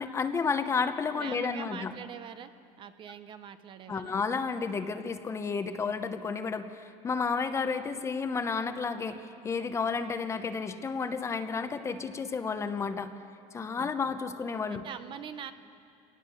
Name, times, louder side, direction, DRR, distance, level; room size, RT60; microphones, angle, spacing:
voice 1, 0.0-1.9 3.9-13.1 13.5-14.8, left 5 dB, 20° left, 9 dB, 0.8 m, -31 dB
voice 2, 1.2-2.5 2.8-4.1 13.7-14.1 14.7-15.5, right 8 dB, 35° right, 11 dB, 0.8 m, -43 dB
24.0 x 18.5 x 7.0 m, 2.4 s
cardioid pair, 145°, 14 cm